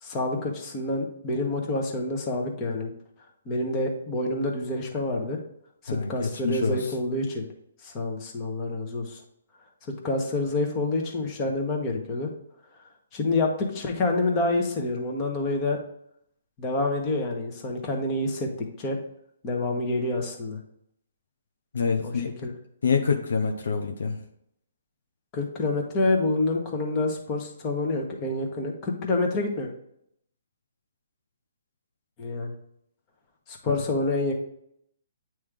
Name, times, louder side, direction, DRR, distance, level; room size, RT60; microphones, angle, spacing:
voice 1, 0.0-2.9 3.5-5.4 5.8-7.5 7.8-9.2 10.0-12.3 13.1-15.8 16.6-18.5 18.8-19.0 19.4-20.6 22.0-22.2 22.4-22.5 25.3-29.7 32.2-32.5 33.5-34.3, left 2 dB, 25° left, 1 dB, 1.3 m, -27 dB
voice 2, 5.9-6.9 21.7-22.5 22.8-24.2 33.7-33.8, left 5 dB, 70° left, 4 dB, 0.8 m, -26 dB
8.9 x 3.1 x 3.7 m, 0.73 s
hypercardioid pair, 140°, 0 cm